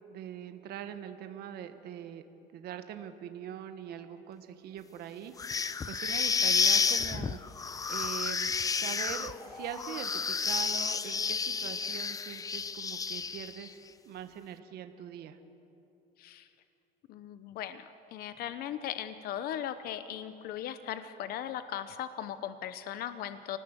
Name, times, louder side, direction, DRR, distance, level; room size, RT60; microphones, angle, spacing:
voice 1, 0.1-2.2 2.5-5.5 5.9-7.4 7.9-13.8 14.0-15.4, right 9 dB, 60° right, 8 dB, 1.5 m, -42 dB
sound 1, 5.4-13.7, left 5 dB, 20° left, 0.6 m, -31 dB
voice 2, 17.1-23.6, left 10 dB, 60° left, 11 dB, 0.9 m, -38 dB
28.5 x 19.0 x 8.2 m, 3.0 s
cardioid pair, 130°, 18 cm